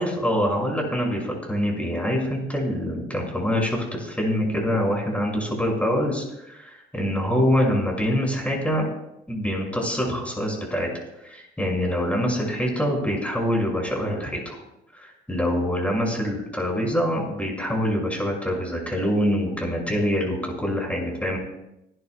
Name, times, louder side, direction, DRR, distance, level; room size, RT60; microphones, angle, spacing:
voice 1, 0.0-8.8 9.3-10.9 11.2-14.6 14.9-21.4, equal, 5° left, 0 dB, 5.9 m, -25 dB
25.5 x 11.5 x 2.3 m, 0.85 s
cardioid pair, 90°, 20 cm